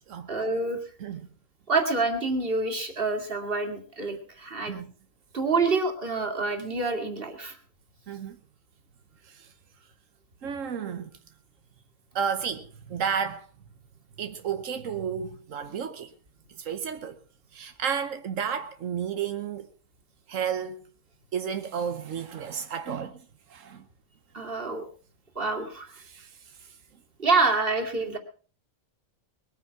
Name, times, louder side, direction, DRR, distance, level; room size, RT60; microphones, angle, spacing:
voice 1, 0.3-0.8 1.7-4.8 5.3-7.6 24.3-24.8 25.3-25.9 27.2-28.2, right 3 dB, 45° right, 2.7 m, -27 dB
voice 2, 10.4-11.1 12.1-13.5 14.2-16.1 16.6-17.1 17.5-19.7 20.3-20.8 21.3-23.2 23.5-23.8 26.0-26.6, right 7 dB, 90° right, 1.4 m, -32 dB
21.0 x 9.2 x 5.9 m
omnidirectional pair, 1.3 m